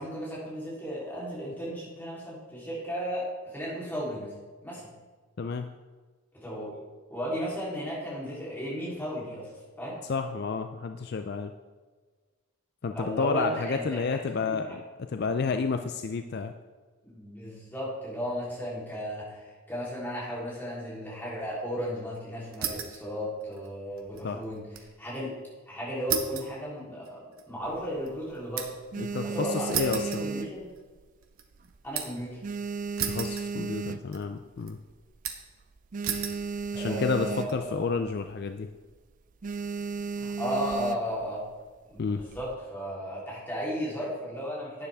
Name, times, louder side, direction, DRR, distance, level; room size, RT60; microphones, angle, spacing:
voice 1, 0.0-4.3 4.6-4.9 6.3-6.8 7.1-9.5 9.8-10.0 12.9-14.6 17.0-24.6 25.0-25.3 25.7-28.7 29.2-30.7 31.8-32.4 36.7-37.9 40.2-41.4 41.9-44.9, equal, 10° left, -7 dB, 3.3 m, -35 dB
voice 2, 5.4-5.8 10.1-11.5 12.8-14.8 15.1-16.5 24.2-24.4 29.0-30.2 33.1-34.8 36.7-38.7 42.0-42.2, left 4 dB, 50° left, 7 dB, 0.4 m, -30 dB
sound 1, 22.5-23.1 23.4-24.9 25.2-25.3 26.1-28.9 29.7-30.9 31.2-32.3 33.0-33.9 34.1-34.7 35.2-35.6 36.0-36.4 37.1-37.5, right 8 dB, 75° right, 1.1 m, -35 dB
sound 2, 27.6-28.3 28.7-31.2 31.5-31.9 32.2-34.4 34.9-35.0 35.2-35.3 35.6-37.8 38.1-38.4 38.7-39.0 39.4-41.2 42.0-42.5, right 4 dB, 35° right, 0.4 m, -35 dB
11.5 x 9.4 x 3.5 m, 1.4 s
head